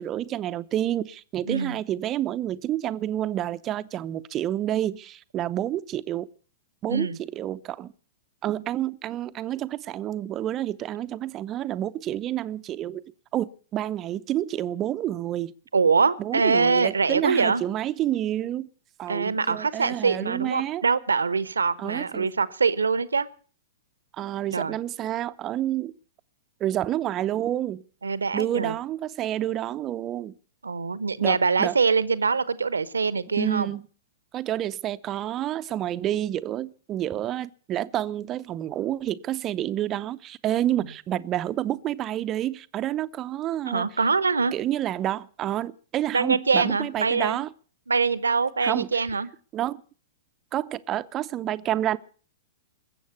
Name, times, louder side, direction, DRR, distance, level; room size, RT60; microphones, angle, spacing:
voice 1, 0.0-6.3 6.8-7.9 8.4-13.0 13.3-15.5 16.2-18.7 19.0-20.8 21.8-22.3 24.2-25.9 26.6-27.8 28.3-30.3 31.2-31.8 33.3-33.9 34.3-43.9 44.5-47.5 48.6-48.9 49.5-49.8 50.5-52.0, right 12 dB, 30° right, 0.7 m, -29 dB
voice 2, 1.5-1.8 6.9-7.2 15.7-17.6 19.1-23.3 24.5-24.8 28.0-28.8 30.6-33.7 43.7-44.5 46.1-47.4 47.9-49.3, right 4 dB, 75° right, 1.0 m, -24 dB
21.0 x 8.0 x 8.2 m
figure-of-eight pair, 105°, 0 cm